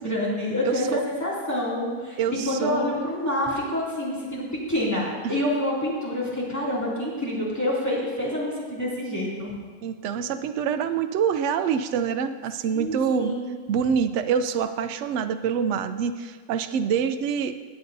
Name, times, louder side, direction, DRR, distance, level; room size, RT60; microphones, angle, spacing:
voice 1, 0.0-9.5 12.7-13.5, left 1 dB, 10° left, -7 dB, 2.6 m, -27 dB
voice 2, 0.6-1.0 2.2-3.1 5.2-5.4 9.8-13.3 13.7-17.6, right 7 dB, 85° right, 9 dB, 0.6 m, -26 dB
18.5 x 7.9 x 2.7 m, 1.5 s
omnidirectional pair, 1.8 m